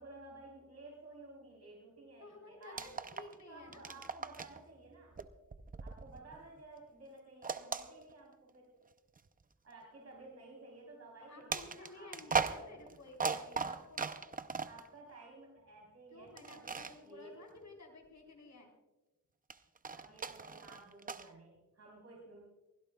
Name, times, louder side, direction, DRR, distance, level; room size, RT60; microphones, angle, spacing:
voice 1, 0.0-3.0 3.5-5.2 5.8-8.7 9.6-12.8 14.6-17.4 20.0-22.4, right 2 dB, 50° right, -3 dB, 3.7 m, -54 dB
voice 2, 2.2-4.0 11.3-14.0 16.1-18.7, left 2 dB, 60° left, 0 dB, 4.2 m, -54 dB
sound 1, 2.6-3.4 3.7-4.6 5.2-6.6 7.4-8.5 9.2-9.3 11.5-14.9 16.4-17.0 19.5-21.3, right 5 dB, 25° right, 0.5 m, -38 dB
23.0 x 16.5 x 2.3 m, 1.1 s
wide cardioid pair, 140°, 32 cm